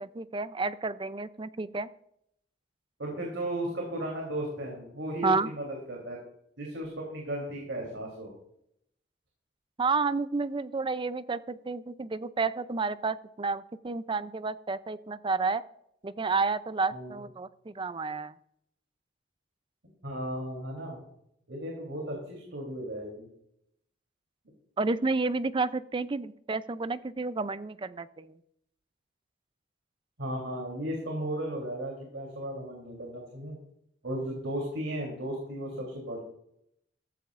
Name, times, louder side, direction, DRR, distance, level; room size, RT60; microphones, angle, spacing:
voice 1, 0.0-1.9 5.2-5.5 9.8-15.6 16.0-18.3 24.8-28.4, right 4 dB, 25° right, 14 dB, 0.5 m, -30 dB
voice 2, 3.0-6.2 6.6-8.3 16.9-17.2 20.0-21.0 21.5-23.3 30.2-33.6 34.0-36.2, right 1 dB, 90° right, -1 dB, 3.4 m, -35 dB
14.5 x 14.5 x 2.5 m, 0.75 s
head